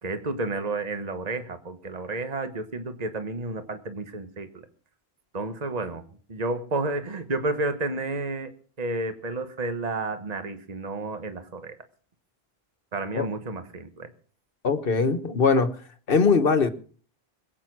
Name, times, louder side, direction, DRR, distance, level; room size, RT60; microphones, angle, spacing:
voice 1, 0.0-4.7 5.3-6.0 6.3-8.5 8.8-11.8 12.9-14.1, right 2 dB, 40° right, 1.4 m, -31 dB
voice 2, 14.6-15.8 16.1-16.7, left 4 dB, 65° left, 1.4 m, -21 dB
21.5 x 8.8 x 6.1 m
omnidirectional pair, 1.0 m